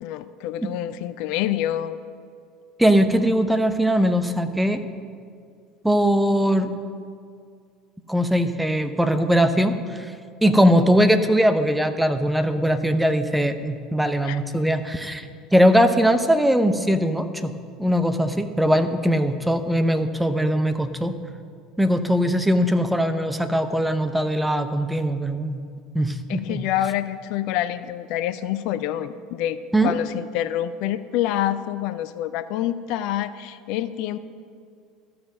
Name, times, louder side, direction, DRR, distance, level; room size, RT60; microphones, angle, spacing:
voice 1, 0.0-2.0 14.3-14.4 26.3-34.2, left 12 dB, 60° left, 13 dB, 0.4 m, -27 dB
voice 2, 2.8-4.8 5.8-6.7 8.1-10.1 10.4-15.3 15.5-17.5 17.8-21.2 21.8-25.6 25.9-26.6 29.7-30.0, equal, 5° right, 9 dB, 0.8 m, -20 dB
12.5 x 6.8 x 6.4 m, 2.2 s
figure-of-eight pair, 70°, 0 cm